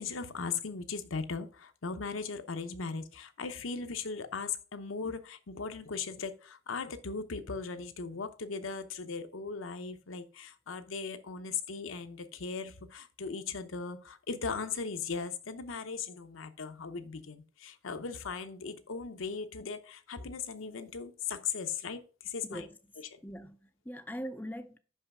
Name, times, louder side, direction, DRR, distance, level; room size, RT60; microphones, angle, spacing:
voice 1, 0.0-22.7 23.1-23.2, left 5 dB, 75° left, 0.8 m, -38 dB
voice 2, 23.2-24.8, equal, 10° left, 0.4 m, -41 dB
5.6 x 5.6 x 6.0 m
head